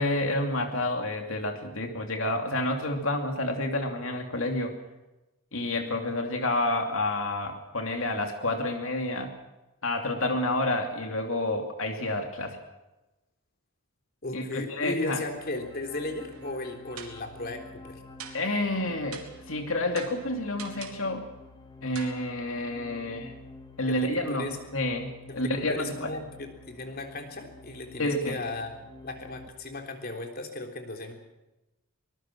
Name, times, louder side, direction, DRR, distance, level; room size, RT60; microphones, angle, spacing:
voice 1, 0.0-4.8 5.5-9.3 9.8-12.6 14.3-15.2 18.3-19.2 19.5-21.2 21.8-23.3 23.8-26.1 28.0-28.3, left 1 dB, 65° left, 4 dB, 2.8 m, -29 dB
voice 2, 14.2-18.0 23.9-24.6 25.3-28.7 29.0-31.1, left 2 dB, 45° left, 4 dB, 3.6 m, -36 dB
sound 1, 15.1-29.5, left 2 dB, 20° left, 2.1 m, -49 dB
sound 2, 16.3-16.6 17.0-17.4 18.2-18.6 19.1-19.5 19.9-21.1 21.9-22.2, right 7 dB, 75° right, 3.4 m, -44 dB
24.5 x 21.0 x 6.1 m, 1.0 s
head